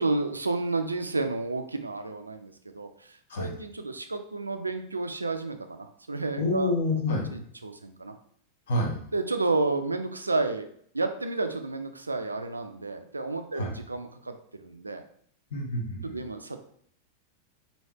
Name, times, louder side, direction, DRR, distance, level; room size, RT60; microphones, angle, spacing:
voice 1, 0.0-6.7 7.6-8.1 9.1-15.0 16.0-16.6, right 3 dB, 80° right, 8 dB, 0.3 m, -31 dB
voice 2, 6.4-7.5 8.7-9.0 13.5-13.7 15.5-16.2, left 2 dB, 60° left, -1 dB, 0.9 m, -28 dB
3.2 x 2.8 x 2.7 m, 0.63 s
figure-of-eight pair, 90°, 0 cm